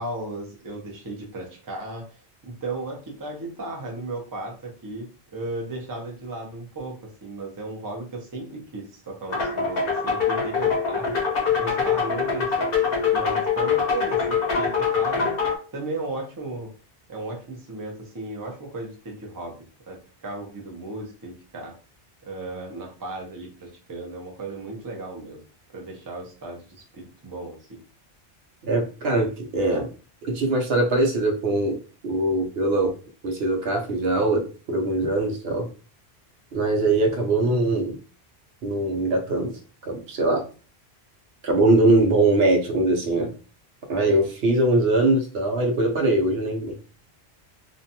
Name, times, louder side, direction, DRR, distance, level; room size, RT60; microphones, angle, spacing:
voice 1, 0.0-2.0 2.4-5.1 5.3-6.9 7.2-11.1 11.6-12.7 13.1-15.3 15.7-16.7 17.1-19.6 19.9-21.7 22.3-25.4 25.7-27.8, right 2 dB, 25° right, 0 dB, 0.5 m, -35 dB
sound 1, 9.3-15.6, left 6 dB, 65° left, 0.9 m, -24 dB
voice 2, 28.6-29.9 30.2-31.8 32.0-32.9 33.2-35.7 36.5-38.0 38.6-39.5 39.8-40.4 41.4-43.3 43.9-46.7, right 2 dB, 70° right, 2 dB, 0.9 m, -22 dB
2.5 x 2.2 x 2.7 m, 0.36 s
omnidirectional pair, 1.1 m